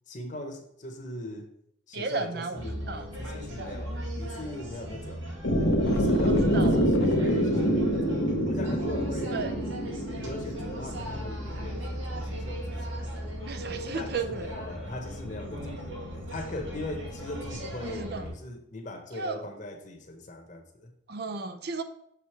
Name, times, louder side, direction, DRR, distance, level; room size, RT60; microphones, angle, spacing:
voice 1, 0.1-1.5 1.9-5.3 5.9-9.4 10.2-13.2 13.7-20.9, left 1 dB, 40° left, 3 dB, 1.0 m, -40 dB
voice 2, 1.9-2.6 2.9-3.0 6.2-6.8 9.3-9.5 13.5-14.5 17.8-18.3 19.1-19.4 21.1-21.8, right 4 dB, 55° right, 9 dB, 0.5 m, -34 dB
sound 1, 2.6-18.3, equal, 85° right, 1.8 m, -37 dB
sound 2, 5.4-11.5, equal, 80° left, 0.8 m, -26 dB
6.6 x 4.9 x 4.4 m, 0.72 s
head